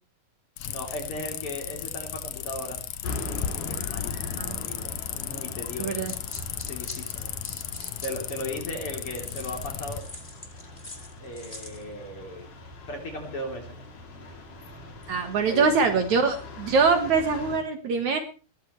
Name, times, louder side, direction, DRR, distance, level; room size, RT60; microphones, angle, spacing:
sound 1, 0.6-10.0, left 10 dB, 75° left, 1.6 m, -35 dB
voice 1, 0.6-2.8 3.7-6.1 6.7-7.3 8.0-10.1 11.2-12.5 12.9-13.8 15.5-15.9, left 1 dB, 35° left, 2 dB, 4.1 m, -37 dB
sound 2, 3.0-17.6, left 2 dB, 60° left, 4.6 m, -41 dB
sound 3, 5.8-8.6 9.1-11.8, left 2 dB, 15° left, 2.1 m, -44 dB
voice 2, 5.8-6.1 15.1-18.2, right 5 dB, 60° right, 6 dB, 2.7 m, -23 dB
21.0 x 14.0 x 3.2 m, 0.35 s
omnidirectional pair, 4.2 m